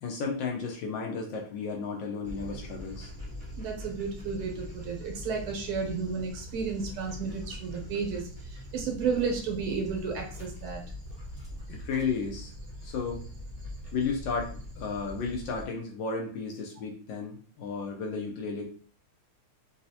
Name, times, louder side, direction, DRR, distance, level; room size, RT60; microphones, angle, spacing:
voice 1, 0.0-3.1 11.7-12.5 12.8-13.2 13.9-18.7, left 5 dB, 70° left, 0 dB, 1.3 m, -33 dB
Dog, 2.2-15.6, left 1 dB, 5° right, 0.9 m, -42 dB
voice 2, 3.6-10.8, right 5 dB, 85° right, 1 dB, 1.8 m, -32 dB
4.0 x 2.3 x 2.7 m, 0.42 s
omnidirectional pair, 2.4 m